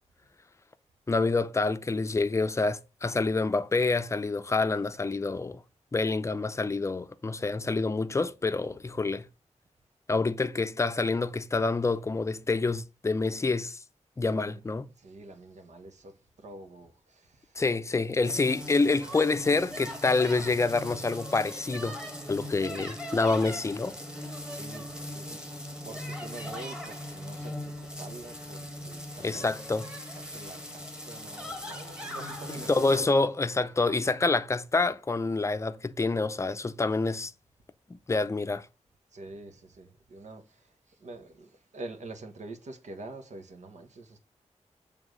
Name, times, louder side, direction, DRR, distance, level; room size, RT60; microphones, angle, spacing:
voice 1, 1.1-5.6 5.9-9.2 10.1-13.8 14.2-14.9 17.6-22.0 22.3-24.0 29.2-29.9 32.7-37.3 37.9-38.7, left 3 dB, 25° left, 0.5 m, -27 dB
voice 2, 14.2-14.6 15.0-17.6 24.3-29.5 30.1-33.1 39.1-44.2, right 2 dB, 80° right, 1.4 m, -46 dB
sound 1, 18.2-33.0, equal, 5° right, 1.6 m, -40 dB
7.2 x 3.5 x 6.3 m
wide cardioid pair, 160°, 12 cm